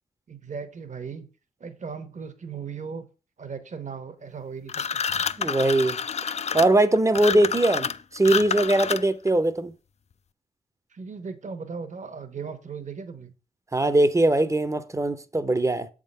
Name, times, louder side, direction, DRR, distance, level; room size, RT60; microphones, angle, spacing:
voice 1, 0.3-1.3 1.6-3.1 3.4-5.1 10.9-13.3, right 5 dB, 50° right, 1.1 m, -37 dB
sound 1, 4.7-9.3, left 6 dB, 45° left, 0.4 m, -28 dB
voice 2, 5.4-6.0 6.5-9.7 13.7-15.9, right 2 dB, 20° right, 0.7 m, -21 dB
7.2 x 3.7 x 5.4 m
cardioid pair, 65°, 16 cm